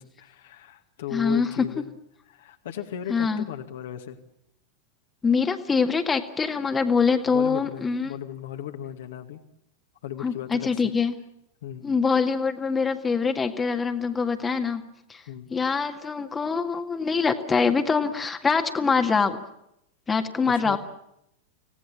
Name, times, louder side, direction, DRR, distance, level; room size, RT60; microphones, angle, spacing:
voice 1, 0.0-1.9 2.3-4.2 7.3-9.4 10.0-10.8 11.6-11.9 15.3-15.5 20.5-20.8, left 11 dB, 60° left, 5 dB, 2.2 m, -36 dB
voice 2, 1.1-1.7 3.1-3.5 5.2-8.1 10.2-11.2 11.8-14.8 15.1-15.2 15.5-19.4 20.1-20.8, left 5 dB, 15° left, 6 dB, 1.9 m, -24 dB
26.0 x 18.0 x 8.8 m, 0.79 s
figure-of-eight pair, 90°, 0 cm